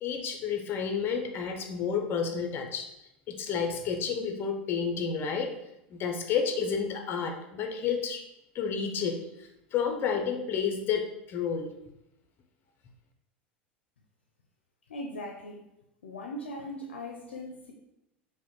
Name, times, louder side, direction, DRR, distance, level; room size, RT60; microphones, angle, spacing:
voice 1, 0.0-2.9 3.3-5.5 5.9-8.2 8.5-9.2 9.7-11.7, left 6 dB, 40° left, 4 dB, 0.5 m, -30 dB
voice 2, 14.9-15.6 16.0-17.7, left 1 dB, 85° left, 2 dB, 0.4 m, -39 dB
4.8 x 2.1 x 2.9 m, 0.89 s
hypercardioid pair, 85°, 6 cm